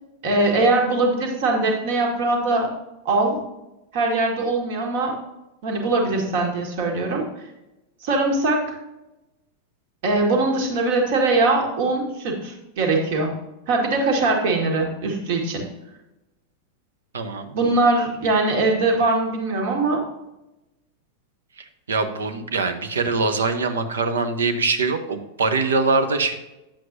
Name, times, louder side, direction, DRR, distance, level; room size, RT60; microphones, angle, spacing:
voice 1, 0.2-2.7 3.1-3.4 3.9-5.2 5.6-7.2 8.0-8.7 10.0-13.3 13.7-15.6 17.5-20.0, right 2 dB, 50° right, 1 dB, 1.8 m, -21 dB
voice 2, 17.1-17.5 21.6-26.3, right 4 dB, 65° right, 8 dB, 0.9 m, -23 dB
10.5 x 7.7 x 2.7 m, 0.97 s
figure-of-eight pair, 90°, 0 cm